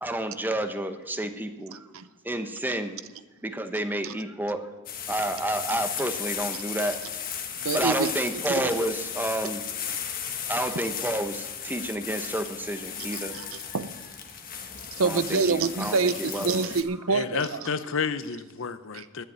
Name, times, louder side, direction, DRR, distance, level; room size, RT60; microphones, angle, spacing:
voice 1, 0.0-1.8 2.2-3.0 3.4-4.6 5.1-7.0 7.7-9.7 10.5-13.4 15.0-16.5, right 1 dB, 10° right, 8 dB, 0.9 m, -30 dB
voice 2, 1.7-2.1 4.0-4.1 7.6-8.1 8.5-8.6 13.3-13.9 15.0-17.6 18.9-19.0, right 4 dB, 75° right, 13 dB, 0.7 m, -27 dB
sound 1, 4.9-16.8, left 7 dB, 45° left, 1.4 m, -35 dB
voice 3, 17.1-19.2, left 5 dB, 65° left, 12 dB, 0.7 m, -31 dB
10.5 x 8.2 x 9.9 m, 1.2 s
head